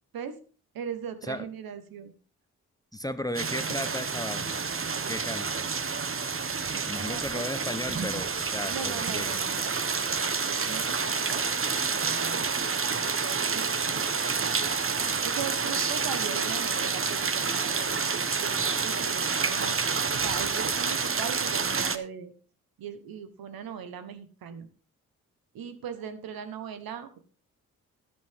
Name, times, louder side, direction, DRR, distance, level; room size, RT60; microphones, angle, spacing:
voice 1, 0.7-2.1 7.0-7.4 8.7-9.6 10.4-11.5 11.9-12.5 13.2-14.6 14.9-19.8 20.2-22.3 22.8-24.7 25.5-27.2, right 7 dB, 75° right, 10 dB, 1.4 m, -39 dB
voice 2, 2.9-4.6 5.1-5.6 6.9-9.4, left 1 dB, 10° left, 11 dB, 1.0 m, -35 dB
sound 1, 3.3-22.0, right 5 dB, 35° right, 1.1 m, -29 dB
11.0 x 11.0 x 3.7 m, 0.38 s
supercardioid pair, 40°, 36 cm